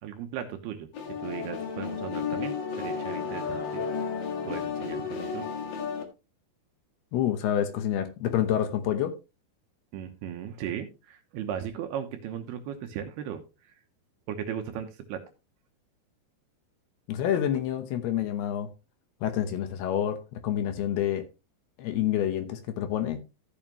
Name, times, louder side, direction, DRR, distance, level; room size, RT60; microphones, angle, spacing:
voice 1, 0.0-3.8 4.5-5.4 9.9-13.4 14.3-15.2, right 9 dB, 75° right, 2.6 m, -37 dB
sound 1, 0.9-6.0, left 6 dB, 60° left, 2.9 m, -33 dB
voice 2, 7.1-9.2 17.1-18.7 19.2-21.2 21.8-23.2, left 10 dB, 75° left, 2.6 m, -28 dB
13.5 x 7.1 x 3.0 m
omnidirectional pair, 5.3 m